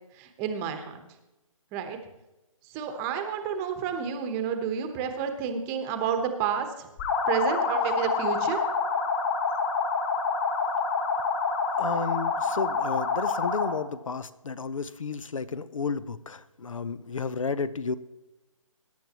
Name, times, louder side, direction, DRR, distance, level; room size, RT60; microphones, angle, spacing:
voice 1, 0.2-1.0 1.7-2.0 2.7-6.9 7.3-8.6, right 7 dB, 15° right, 6 dB, 1.1 m, -30 dB
sound 1, 7.0-13.8, left 4 dB, 30° left, 2.1 m, -27 dB
voice 2, 11.8-18.0, left 5 dB, 70° left, 16 dB, 0.9 m, -32 dB
21.5 x 10.5 x 3.0 m, 0.99 s
figure-of-eight pair, 155°, 17 cm